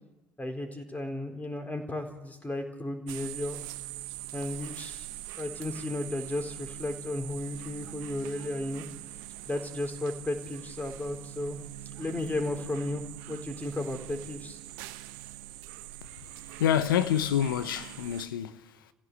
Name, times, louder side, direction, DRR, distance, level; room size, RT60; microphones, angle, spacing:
voice 1, 0.4-3.6 4.3-5.1 5.4-8.9 9.5-11.6 12.0-14.6, left 1 dB, 15° left, 4.1 m, -34 dB
sound 1, 3.1-18.3, right 14 dB, 75° right, 0.9 m, -43 dB
voice 2, 16.6-18.9, left 9 dB, 85° left, 1.0 m, -27 dB
29.5 x 15.5 x 8.1 m
hypercardioid pair, 60°, 11 cm